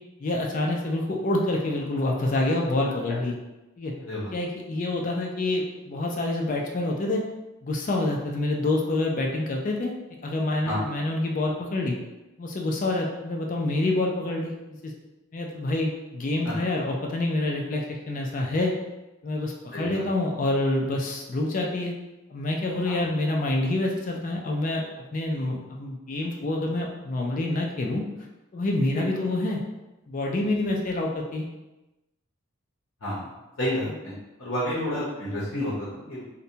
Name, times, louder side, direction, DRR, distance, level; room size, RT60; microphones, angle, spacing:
voice 1, 0.2-3.4 3.8-3.9 4.3-7.2 7.6-9.9 10.2-11.9 12.4-14.5 14.8-14.9 15.3-18.7 19.2-21.9 22.3-24.8 25.1-28.0 28.5-29.6 30.1-31.4, left 2 dB, 35° left, 0 dB, 0.3 m, -27 dB
voice 2, 4.0-4.3 10.6-10.8 16.4-16.5 19.7-20.0 22.8-22.9 28.9-29.0 33.0-33.3 33.6-34.1 34.4-36.2, left 1 dB, 60° left, -8 dB, 0.7 m, -30 dB
2.7 x 2.1 x 2.7 m, 1.0 s
head